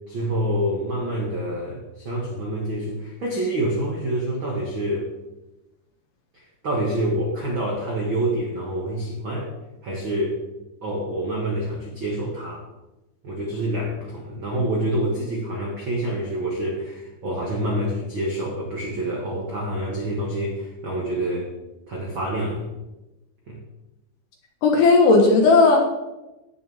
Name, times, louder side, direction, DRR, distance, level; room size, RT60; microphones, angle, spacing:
voice 1, 0.1-5.1 6.6-9.5 9.8-10.4 10.8-12.7 13.2-21.5 21.9-22.7 23.5-23.6, right 1 dB, 65° right, -2 dB, 1.2 m, -27 dB
voice 2, 24.6-25.8, left 3 dB, 65° left, 2 dB, 2.5 m, -15 dB
17.0 x 7.0 x 3.6 m, 0.99 s
omnidirectional pair, 4.9 m